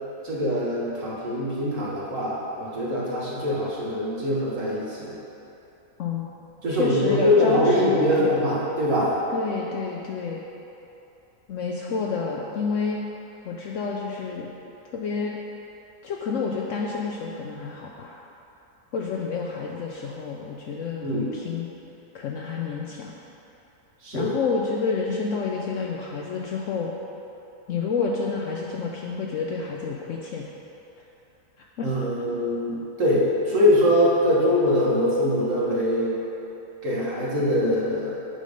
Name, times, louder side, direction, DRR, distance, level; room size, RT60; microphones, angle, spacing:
voice 1, 0.2-5.1 6.6-9.1 21.0-21.3 24.0-24.3 31.8-36.2 36.8-38.1, left 1 dB, 55° right, -6 dB, 1.7 m, -23 dB
voice 2, 6.7-8.4 9.3-10.4 11.5-13.0 13.4-14.5 14.9-15.4 16.0-18.2 18.9-21.7 22.1-23.1 24.1-26.9 27.7-30.4 31.8-31.9, left 5 dB, 65° left, -1 dB, 0.8 m, -29 dB
7.5 x 5.0 x 5.2 m, 2.9 s
omnidirectional pair, 1.7 m